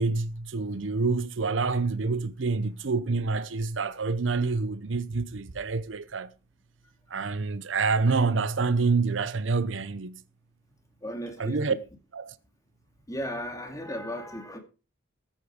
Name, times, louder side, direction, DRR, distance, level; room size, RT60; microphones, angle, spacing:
voice 1, 0.0-6.3 7.1-10.2 11.4-11.7 12.1-12.3, right 4 dB, 75° right, 0.7 m, -27 dB
voice 2, 11.0-11.6 13.1-14.6, equal, 20° left, 2.5 m, -35 dB
13.5 x 9.0 x 4.9 m
head